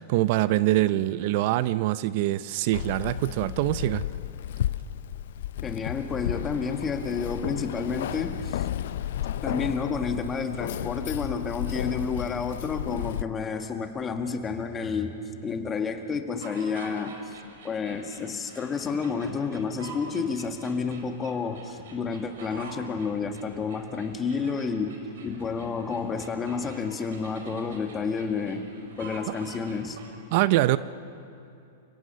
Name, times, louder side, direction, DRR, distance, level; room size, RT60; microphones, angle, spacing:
voice 1, 0.0-4.0 30.3-30.8, right 16 dB, 55° right, 16 dB, 0.5 m, -24 dB
Keys jangling, 2.7-13.2, left 11 dB, 70° left, 0.6 m, -33 dB
voice 2, 5.6-8.7 9.4-15.2 15.4-17.4 17.6-25.0 25.2-28.7 29.0-30.0, left 5 dB, 20° left, 6 dB, 1.7 m, -30 dB
sound 1, 16.4-30.1, right 4 dB, 70° right, 3.9 m, -47 dB
29.5 x 17.5 x 6.8 m, 2.7 s
hypercardioid pair, 130°, 0 cm